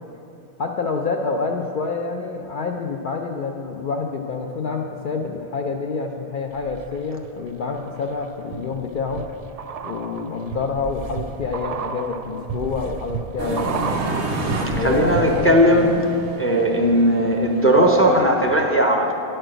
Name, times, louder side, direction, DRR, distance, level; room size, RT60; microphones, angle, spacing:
voice 1, 0.6-9.2 9.8-14.1 14.7-16.0, left 4 dB, 55° left, 1 dB, 0.6 m, -27 dB
sound 1, 6.5-7.3 7.7-15.6 15.9-16.0, right 6 dB, 55° right, 0.4 m, -32 dB
sound 2, 13.4-18.5, right 2 dB, 90° right, 1.3 m, -30 dB
voice 2, 14.6-15.9 16.4-19.1, equal, 15° left, 1 dB, 0.5 m, -17 dB
9.9 x 4.5 x 7.6 m, 2.9 s
omnidirectional pair, 1.1 m